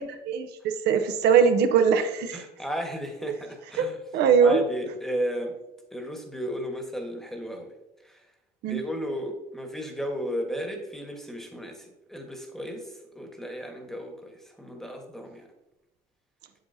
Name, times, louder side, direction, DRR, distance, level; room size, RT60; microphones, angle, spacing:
voice 1, 0.0-2.4 3.8-4.6 8.6-8.8, right 6 dB, 80° right, 7 dB, 0.7 m, -22 dB
voice 2, 2.3-4.0 4.4-5.5 5.9-7.7 8.0-8.2 8.7-15.4, equal, ahead, 3 dB, 1.3 m, -34 dB
7.7 x 7.6 x 2.7 m, 0.94 s
cardioid pair, 110°, 17 cm